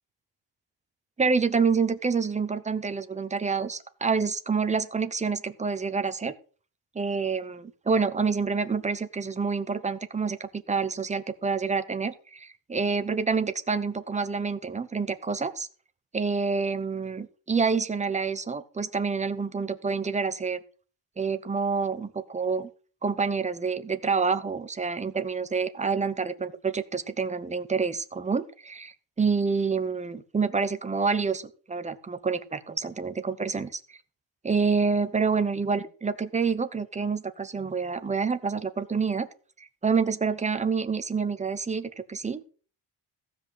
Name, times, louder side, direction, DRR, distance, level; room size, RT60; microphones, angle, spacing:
voice 1, 1.2-6.3 6.9-15.7 16.1-20.6 21.2-22.7 23.0-33.8 34.4-39.3 39.6-42.5, right 5 dB, 15° right, 11 dB, 0.8 m, -27 dB
15.0 x 5.2 x 7.9 m, 0.40 s
cardioid pair, 170°, 41 cm